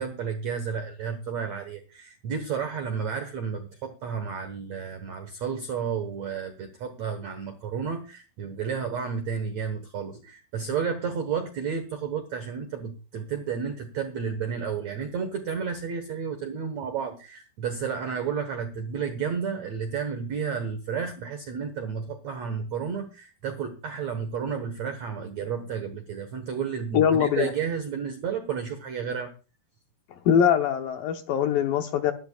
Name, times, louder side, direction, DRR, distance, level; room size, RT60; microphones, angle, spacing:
voice 1, 0.0-29.3, right 6 dB, 70° right, 1.7 m, -32 dB
voice 2, 26.9-27.5 30.3-32.1, left 8 dB, 70° left, 2.3 m, -22 dB
23.0 x 11.5 x 2.3 m
omnidirectional pair, 5.0 m